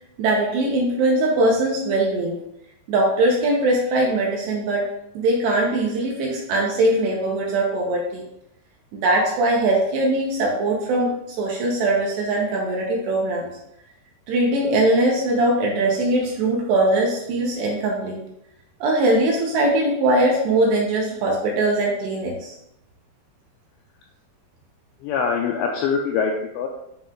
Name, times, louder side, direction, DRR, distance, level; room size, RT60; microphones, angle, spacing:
voice 1, 0.2-2.4 2.9-4.9 5.1-8.2 8.9-13.5 14.3-18.2 18.8-22.5, right 2 dB, 75° right, -2 dB, 2.7 m, -21 dB
voice 2, 25.0-26.7, left 5 dB, 85° left, 1 dB, 2.5 m, -23 dB
9.1 x 3.1 x 3.7 m, 0.81 s
omnidirectional pair, 5.6 m